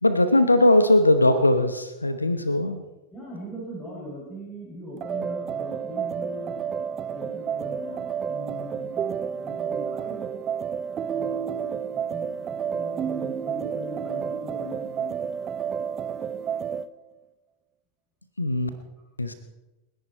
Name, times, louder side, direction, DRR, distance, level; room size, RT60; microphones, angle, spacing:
voice 1, 0.0-2.8 18.4-18.7 19.2-19.3, left 1 dB, 85° left, 11 dB, 1.0 m, -20 dB
voice 2, 3.1-6.6 7.1-10.3 11.0-11.6 11.9-15.3, equal, 15° left, -5 dB, 6.9 m, -40 dB
sound 1, 5.0-16.9, right 7 dB, 30° right, 0.7 m, -30 dB
29.5 x 10.5 x 4.5 m, 1.0 s
figure-of-eight pair, 90°, 0 cm